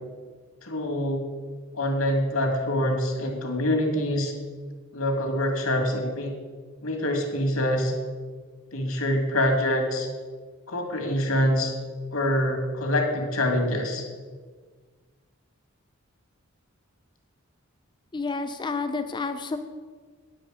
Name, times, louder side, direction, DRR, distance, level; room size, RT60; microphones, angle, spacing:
voice 1, 0.6-1.2 1.7-4.3 4.9-6.3 6.8-7.9 8.7-10.1 10.7-11.7 12.1-14.0, left 1 dB, 80° left, 2 dB, 2.1 m, -25 dB
voice 2, 18.1-19.6, left 4 dB, 20° left, 8 dB, 0.4 m, -30 dB
9.7 x 7.7 x 4.9 m, 1.5 s
head